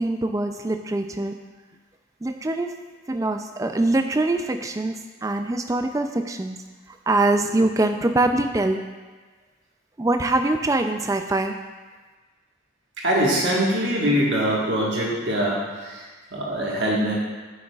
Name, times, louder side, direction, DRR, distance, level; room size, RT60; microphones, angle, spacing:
voice 1, 0.0-1.3 2.2-2.7 3.1-4.9 5.2-6.6 7.1-8.8 10.0-11.6, right 2 dB, 15° right, 6 dB, 0.3 m, -23 dB
voice 2, 13.0-16.0 16.3-17.1, equal, 60° right, -4 dB, 1.5 m, -23 dB
9.3 x 6.3 x 2.4 m, 1.3 s
head